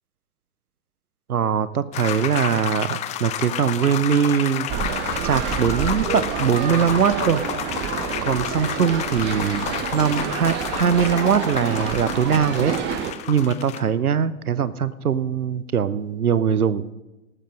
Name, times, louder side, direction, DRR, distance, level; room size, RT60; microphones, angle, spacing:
voice 1, 1.3-4.7 5.2-7.4 8.2-12.7 13.3-16.8, right 7 dB, 85° right, 17 dB, 0.8 m, -21 dB
sound 1, 1.9-13.8, left 10 dB, 15° left, 0.6 m, -31 dB
sound 2, 4.7-13.1, right 8 dB, 25° right, 0.9 m, -28 dB
18.5 x 7.8 x 5.1 m, 1.0 s
figure-of-eight pair, 110°, 43 cm